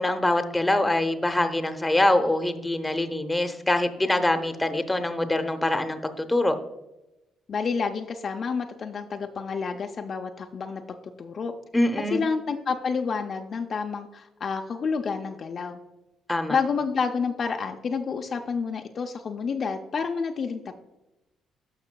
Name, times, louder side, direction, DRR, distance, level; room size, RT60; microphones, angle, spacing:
voice 1, 0.0-6.6 11.7-12.2 16.3-16.6, left 1 dB, 15° left, 8 dB, 0.8 m, -24 dB
voice 2, 7.5-11.5 12.1-15.8 16.5-20.8, left 5 dB, 50° left, 4 dB, 0.5 m, -29 dB
11.5 x 5.6 x 2.2 m, 0.95 s
supercardioid pair, 75°, 0 cm